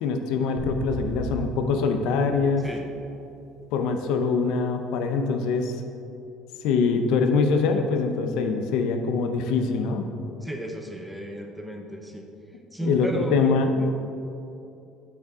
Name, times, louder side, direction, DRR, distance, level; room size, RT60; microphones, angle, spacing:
voice 1, 0.0-2.6 3.7-5.7 6.6-10.0 12.8-13.7, left 4 dB, 70° left, 5 dB, 0.6 m, -24 dB
sound 1, 0.6-3.1, equal, 50° left, 1.7 m, -36 dB
voice 2, 10.4-12.3 12.7-13.4 13.7-13.9, right 1 dB, 5° right, 2 dB, 0.7 m, -34 dB
7.4 x 6.8 x 3.6 m, 2.7 s
cardioid pair, 140°, 0 cm